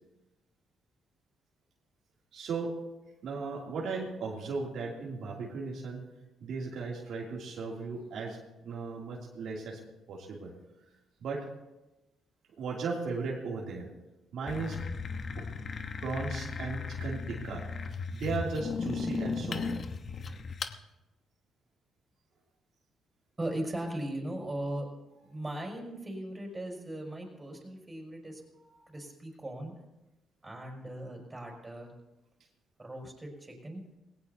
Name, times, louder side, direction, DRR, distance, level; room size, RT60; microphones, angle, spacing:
voice 1, 2.3-2.8 3.2-6.1 6.4-9.8 10.1-10.5 11.2-11.5 12.6-13.9 14.3-14.8 15.4-15.5 16.0-17.7 18.1-19.7, right 4 dB, 70° right, -3 dB, 2.8 m, -36 dB
sound 1, 14.5-20.8, left 4 dB, 45° left, 1.0 m, -36 dB
voice 2, 23.4-24.9 25.2-28.4 28.9-29.7 30.4-31.9 32.8-33.8, right 1 dB, 20° right, 1 dB, 5.7 m, -38 dB
20.0 x 17.5 x 2.8 m, 1.0 s
cardioid pair, 90°, 0 cm